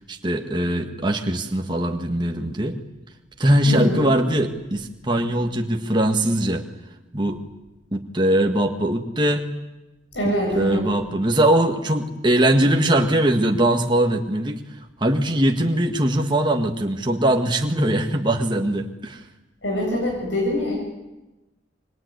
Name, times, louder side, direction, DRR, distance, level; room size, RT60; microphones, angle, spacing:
voice 1, 0.0-2.8 3.4-6.6 7.1-7.4 7.9-9.5 10.2-14.6 15.0-19.2, right 1 dB, 25° right, 3 dB, 1.7 m, -21 dB
voice 2, 3.7-4.0 10.1-10.8 19.6-20.8, left 1 dB, 80° left, -1 dB, 7.7 m, -24 dB
26.0 x 23.5 x 9.6 m, 1.0 s
head